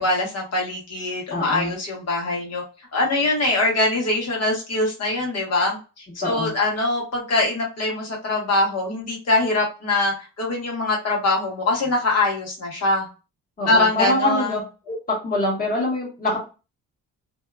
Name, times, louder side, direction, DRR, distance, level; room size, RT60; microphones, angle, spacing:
voice 1, 0.0-2.6 2.9-13.1 13.7-14.5, left 2 dB, 50° left, -1 dB, 1.2 m, -23 dB
voice 2, 1.3-1.7 6.2-6.5 13.6-14.6 14.9-16.4, left 1 dB, 25° left, -4 dB, 1.3 m, -24 dB
2.7 x 2.4 x 2.2 m, 0.32 s
cardioid pair, 115°, 33 cm